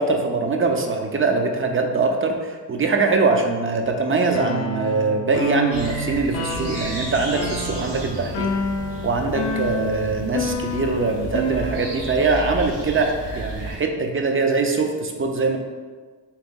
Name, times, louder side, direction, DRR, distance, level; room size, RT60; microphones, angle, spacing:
voice 1, 0.0-8.5 9.0-15.6, right 3 dB, 30° right, 4 dB, 0.5 m, -22 dB
sound 1, 4.3-12.2, left 2 dB, 80° left, 0.6 m, -29 dB
sound 2, 5.7-13.8, right 1 dB, 90° right, 1.0 m, -33 dB
3.4 x 3.0 x 3.6 m, 1.5 s
cardioid pair, 65°, 43 cm